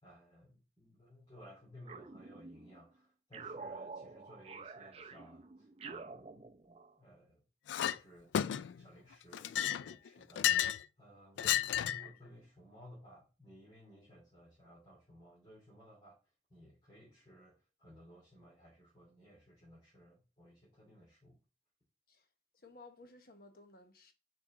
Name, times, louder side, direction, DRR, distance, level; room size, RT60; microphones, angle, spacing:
voice 1, 0.0-7.4 7.8-16.2 16.5-21.4, equal, 30° left, 2.8 m, -58 dB
sound 1, 1.9-2.8 3.3-7.0, right 4 dB, 35° right, 0.5 m, -48 dB
Chink clink, 7.7-8.0 8.3-8.9 9.3-10.8 11.4-12.1, left 10 dB, 90° left, 0.3 m, -32 dB
voice 2, 22.6-24.1, left 2 dB, 55° left, 1.0 m, -57 dB
6.5 x 4.5 x 3.8 m
head